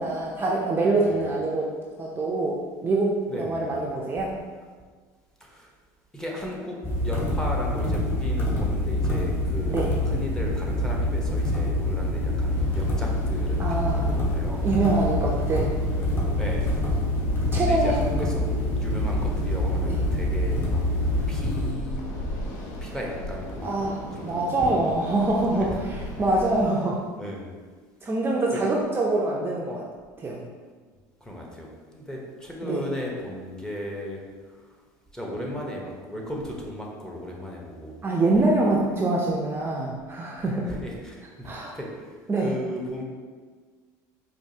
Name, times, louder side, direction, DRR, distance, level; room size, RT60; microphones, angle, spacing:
voice 1, 0.0-1.7 2.0-2.6 2.8-4.3 9.7-9.9 13.6-14.0 14.6-15.7 17.5-18.0 19.8-20.0 23.6-25.7 26.2-27.0 28.0-29.8 30.2-30.5 32.6-32.8 38.0-40.7 41.4-41.7 42.3-42.5, right 2 dB, 25° right, -3 dB, 0.5 m, -24 dB
voice 2, 3.3-3.7 5.4-5.7 6.1-9.8 10.0-14.7 15.9-16.1 16.4-16.8 17.5-20.8 21.3-22.0 22.8-24.7 25.5-25.8 26.4-26.5 27.2-27.5 28.5-28.6 31.2-34.2 35.1-38.2 40.6-43.0, equal, 5° left, -2 dB, 0.9 m, -36 dB
sound 1, 6.8-21.7, left 1 dB, 25° left, 1.1 m, -26 dB
sound 2, 12.5-26.7, left 1 dB, 85° left, 0.6 m, -37 dB
4.4 x 2.5 x 2.7 m, 1.5 s
supercardioid pair, 85°, 9 cm